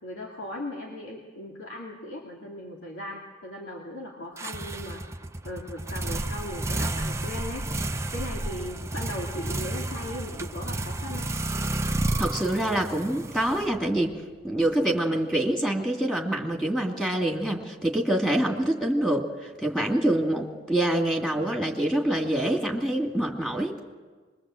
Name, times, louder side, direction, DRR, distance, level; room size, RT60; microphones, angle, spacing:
voice 1, 0.0-5.0 5.4-7.7 8.1-11.3, left 1 dB, 75° left, -2 dB, 2.8 m, -38 dB
sound 1, 4.4-14.1, right 1 dB, 15° right, 0.7 m, -31 dB
voice 2, 12.2-14.2 14.4-23.7, right 1 dB, 5° left, 0 dB, 2.6 m, -26 dB
24.5 x 22.0 x 7.7 m, 1.4 s
head